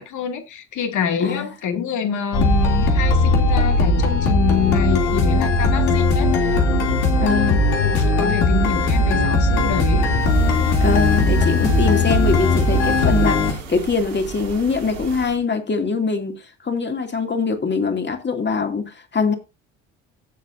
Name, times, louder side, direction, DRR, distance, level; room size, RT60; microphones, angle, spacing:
voice 1, 0.0-6.5 7.9-10.1, left 7 dB, 55° left, 2.5 m, -26 dB
sound 1, 2.3-13.5, left 2 dB, 70° left, 3.0 m, -18 dB
voice 2, 7.2-7.6 10.8-19.3, left 4 dB, 30° left, 2.7 m, -23 dB
sound 2, 10.2-15.4, right 5 dB, 75° right, 4.0 m, -35 dB
17.5 x 7.6 x 2.7 m
figure-of-eight pair, 55°, 37 cm